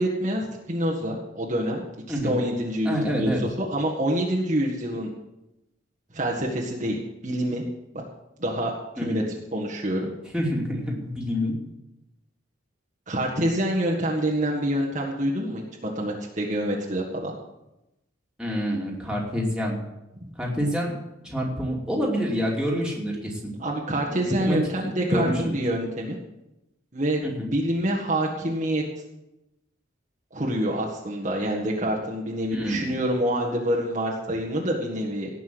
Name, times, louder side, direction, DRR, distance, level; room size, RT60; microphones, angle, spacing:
voice 1, 0.0-5.1 6.1-7.6 7.9-8.0 8.4-9.2 9.5-10.1 13.1-17.3 20.2-20.3 23.6-26.2 26.9-28.8 30.3-35.3, right 1 dB, 35° right, -3 dB, 1.7 m, -26 dB
voice 2, 2.8-3.4 9.0-9.2 10.3-11.6 18.4-19.8 20.4-23.5 24.3-24.6 25.1-25.6 27.2-27.5 32.5-32.9, equal, 5° right, -3 dB, 2.8 m, -27 dB
18.0 x 6.1 x 7.9 m, 0.92 s
head